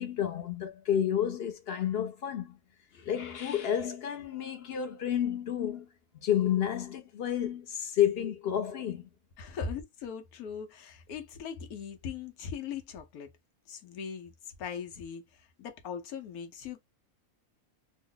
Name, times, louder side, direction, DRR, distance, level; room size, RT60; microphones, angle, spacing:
voice 1, 0.0-2.5 2.9-5.9 6.2-9.1, left 10 dB, 55° left, 0.7 m, -30 dB
voice 2, 9.4-13.3 13.7-16.8, left 7 dB, 85° left, 1.2 m, -40 dB
3.0 x 2.1 x 3.7 m
omnidirectional pair, 1.5 m